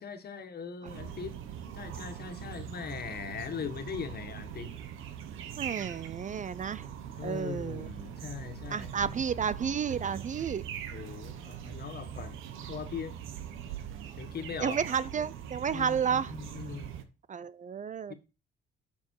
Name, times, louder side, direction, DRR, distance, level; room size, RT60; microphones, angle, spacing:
voice 1, 0.0-1.4 1.7-4.7 7.2-9.1 10.9-12.4 12.7-13.1 14.2-14.8 15.7-16.9 18.1-18.2, left 6 dB, 50° left, 1.7 m, -40 dB
sound 1, 0.9-17.0, right 9 dB, 90° right, 1.2 m, -42 dB
voice 2, 5.6-6.9 7.2-7.9 8.7-10.6 14.6-16.3 17.3-18.1, right 7 dB, 40° right, 0.5 m, -31 dB
6.9 x 6.8 x 4.7 m
cardioid pair, 90°, 20 cm